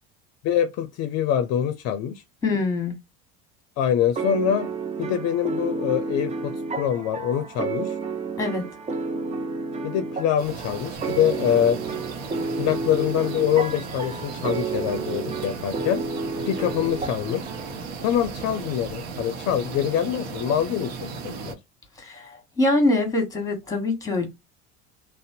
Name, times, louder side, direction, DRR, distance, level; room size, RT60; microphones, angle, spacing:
voice 1, 0.4-2.2 3.8-4.7 5.0-7.9 9.8-11.8 12.6-16.0 16.5-17.5 18.0-21.6, left 10 dB, 55° left, 0.5 m, -24 dB
voice 2, 2.4-2.9 8.4-8.7 22.0-24.3, left 2 dB, 10° left, 1.2 m, -24 dB
sound 1, 4.1-17.9, right 4 dB, 20° right, 0.5 m, -31 dB
sound 2, 10.4-21.5, right 4 dB, 55° right, 0.8 m, -36 dB
2.5 x 2.1 x 2.7 m
hypercardioid pair, 85°, 32 cm